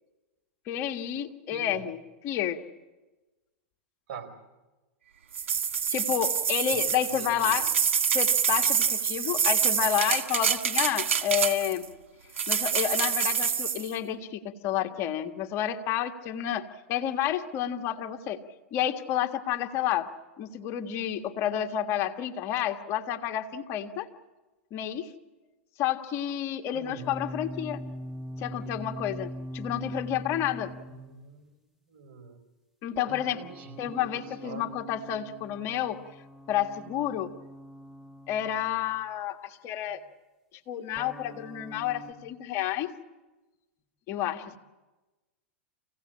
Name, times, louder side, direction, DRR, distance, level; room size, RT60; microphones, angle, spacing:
voice 1, 0.7-2.6 5.9-7.7 8.1-11.9 12.5-18.4 18.7-20.1 20.4-24.1 24.7-25.1 25.8-27.8 28.4-30.7 32.8-33.4 33.8-36.0 36.5-37.3 38.3-40.0 40.7-42.9 44.1-44.6, left 10 dB, 45° left, 6 dB, 1.6 m, -30 dB
voice 2, 1.5-1.8 4.1-4.3 7.2-7.7 26.7-27.2 30.9-31.5 31.9-32.4 33.0-34.1 34.4-34.7, right 6 dB, 55° right, 5 dB, 4.1 m, -44 dB
sound 1, 5.3-11.8 12.4-13.9, right 7 dB, 85° right, 1.8 m, -26 dB
sound 2, 27.0-31.3 33.0-38.9 41.0-42.1, equal, 5° right, 1.9 m, -42 dB
26.5 x 17.0 x 8.7 m, 1.2 s
hypercardioid pair, 110°, 7 cm